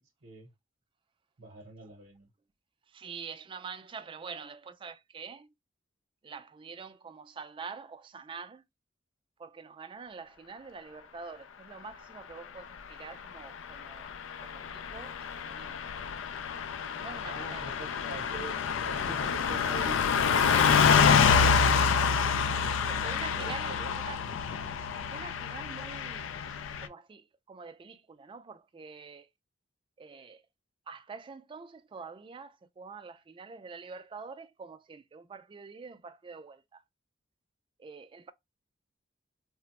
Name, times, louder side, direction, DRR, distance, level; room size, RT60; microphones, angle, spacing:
voice 1, 0.2-0.5 1.4-2.3 17.2-20.3 22.2-24.1, right 2 dB, 65° right, 0.8 m, -46 dB
voice 2, 2.9-5.5 6.2-8.6 9.4-14.1 14.4-15.8 16.9-17.6 20.5-21.3 22.5-23.7 24.1-24.2 25.1-26.3 26.8-29.3 30.0-30.4 30.9-36.6 37.8-38.3, right 5 dB, 25° right, 0.3 m, -45 dB
Car passing by / Truck, 13.9-26.9, left 6 dB, 90° left, 0.4 m, -27 dB
3.2 x 2.0 x 2.8 m
head